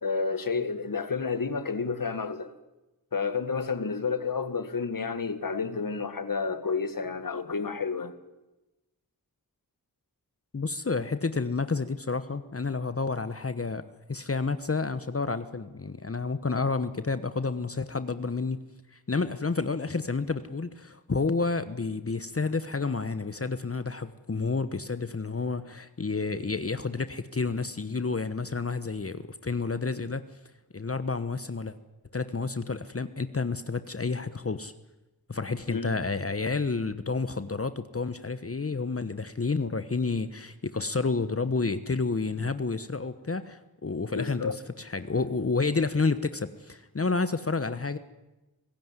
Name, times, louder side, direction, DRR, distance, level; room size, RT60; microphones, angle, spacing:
voice 1, 0.0-2.5 3.1-8.1 35.7-35.9 44.1-44.6, left 5 dB, 60° left, 1.8 m, -30 dB
voice 2, 10.5-13.8 14.1-18.6 18.9-30.2 30.7-31.7 32.1-34.7 35.3-48.0, left 4 dB, 40° left, 1.2 m, -30 dB
25.0 x 16.0 x 9.8 m
cardioid pair, 40°, 37 cm